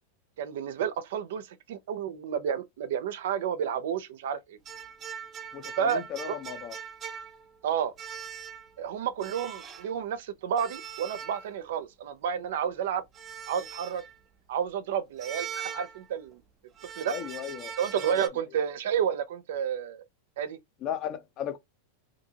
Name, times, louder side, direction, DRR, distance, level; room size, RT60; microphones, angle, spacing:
voice 1, 0.4-4.6 5.8-6.4 7.6-7.9 8.8-13.0 13.5-14.0 14.5-16.4 17.0-17.1 17.8-20.0 20.4-20.6, right 8 dB, 75° right, 0.5 m, -31 dB
sound 1, 4.7-7.6 8.0-8.8 9.2-9.9 10.6-11.8 13.1-14.2 15.2-16.3 16.8-18.3, right 8 dB, 25° right, 0.5 m, -41 dB
voice 2, 5.5-6.7 17.1-17.7 18.1-18.2 20.8-21.6, left 9 dB, 35° left, 0.6 m, -35 dB
2.7 x 2.7 x 2.7 m
supercardioid pair, 140°, 0 cm